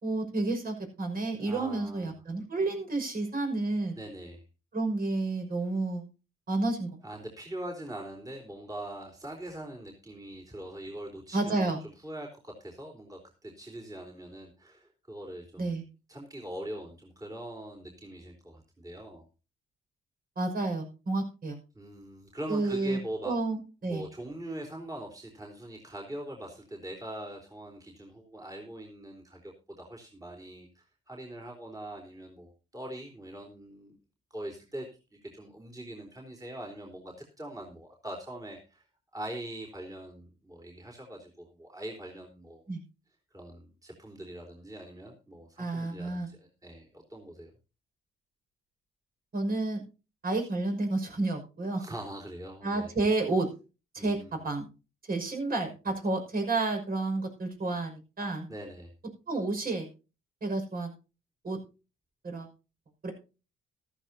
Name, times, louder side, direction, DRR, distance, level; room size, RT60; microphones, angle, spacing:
voice 1, 0.0-4.0 4.7-6.0 6.5-7.0 11.3-11.8 15.6-15.8 20.4-21.6 22.5-23.0 23.2-24.0 42.7-42.8 45.6-46.3 49.3-49.8 50.2-51.8 52.6-53.5 53.9-54.7 55.1-58.5 59.3-59.9 60.4-60.9 61.4-61.6 62.2-62.5 63.0-63.1, right 2 dB, 45° right, 4 dB, 5.9 m, -30 dB
voice 2, 1.4-2.1 4.0-4.4 7.0-15.8 16.1-19.2 21.7-23.3 23.8-34.0 34.3-34.9 35.2-38.8 39.1-42.6 43.3-47.5 51.8-52.9 54.0-54.5 58.5-58.9, right 1 dB, 15° right, 0 dB, 4.0 m, -42 dB
14.5 x 13.5 x 2.8 m, 0.32 s
cardioid pair, 90°, 20 cm